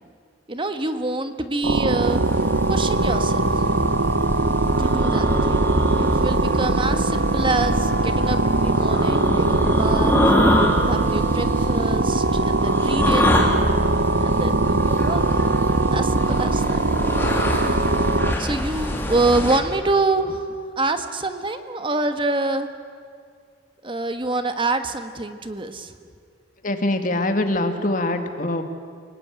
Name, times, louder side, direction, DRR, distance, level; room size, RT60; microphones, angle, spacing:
voice 1, 0.5-2.2 2.7-3.6 4.8-5.7 6.0-10.1 10.9-13.5 14.2-15.5 15.9-16.8 18.4-20.4 20.8-22.7 23.8-25.9, right 2 dB, 30° right, 8 dB, 1.4 m, -26 dB
sound 1, 1.6-18.3, right 3 dB, 80° right, 0.9 m, -21 dB
sound 2, 2.0-19.6, left 1 dB, 10° left, 3.1 m, -25 dB
voice 2, 26.6-28.6, left 1 dB, 45° left, 6 dB, 2.1 m, -23 dB
29.5 x 18.5 x 9.5 m, 2.1 s
head